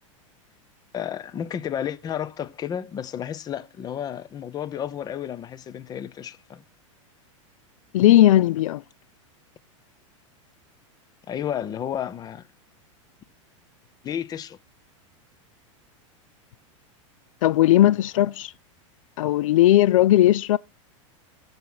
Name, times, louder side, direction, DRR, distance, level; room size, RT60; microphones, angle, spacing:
voice 1, 0.9-6.6 11.3-12.4 14.0-14.6, left 9 dB, 25° left, 0.7 m, -32 dB
voice 2, 7.9-8.8 17.4-18.5 19.2-20.6, left 14 dB, 80° left, 0.4 m, -17 dB
12.0 x 7.2 x 4.0 m
supercardioid pair, 135°, 17 cm